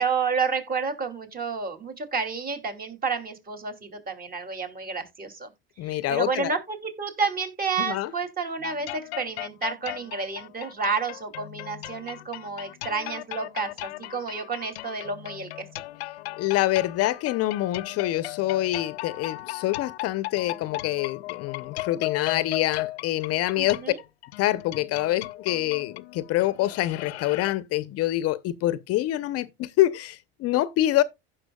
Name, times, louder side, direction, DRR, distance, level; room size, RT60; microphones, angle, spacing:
voice 1, 0.0-5.5 5.8-15.7 23.6-24.0, right 5 dB, 30° right, 2.8 m, -30 dB
voice 2, 5.8-6.5 7.8-8.1 16.4-23.8 24.4-31.0, left 15 dB, 50° left, 0.8 m, -26 dB
sound 1, 8.6-27.5, left 17 dB, 90° left, 0.6 m, -37 dB
15.5 x 6.2 x 2.3 m
hypercardioid pair, 95°, 31 cm